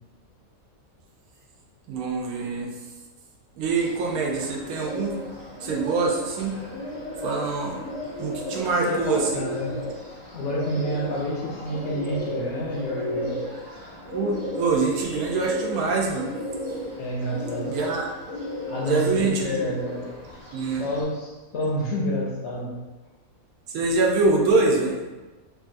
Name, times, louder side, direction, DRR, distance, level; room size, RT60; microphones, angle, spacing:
voice 1, 1.9-2.7 3.6-5.2 5.6-6.6 7.2-7.8 8.2-9.4 14.1-16.3 17.7-18.1 18.8-19.6 20.5-20.8 23.7-25.0, right 3 dB, 85° right, 0 dB, 1.0 m, -24 dB
Bird, 3.7-21.0, left 1 dB, 25° right, 0.7 m, -34 dB
voice 2, 8.6-9.8 10.3-13.4 17.0-17.7 18.7-20.1 20.7-22.8, left 1 dB, 65° left, -3 dB, 0.7 m, -29 dB
3.1 x 2.4 x 2.5 m, 1.2 s
omnidirectional pair, 1.5 m